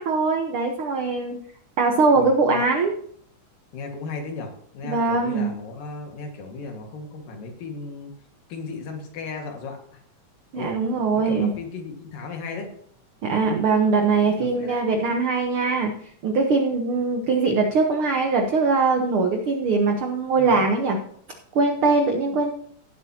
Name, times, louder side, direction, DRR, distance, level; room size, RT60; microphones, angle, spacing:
voice 1, 0.0-1.4 1.8-2.9 4.8-5.5 10.5-11.5 13.2-15.9 16.2-21.0 21.5-22.5, right 4 dB, 75° right, 3 dB, 1.2 m, -21 dB
voice 2, 2.2-2.7 3.7-8.1 8.5-9.8 10.6-10.8 11.1-12.7 14.4-14.8 20.4-20.7, left 4 dB, 85° left, 3 dB, 3.5 m, -35 dB
17.5 x 7.8 x 2.8 m, 0.64 s
omnidirectional pair, 3.8 m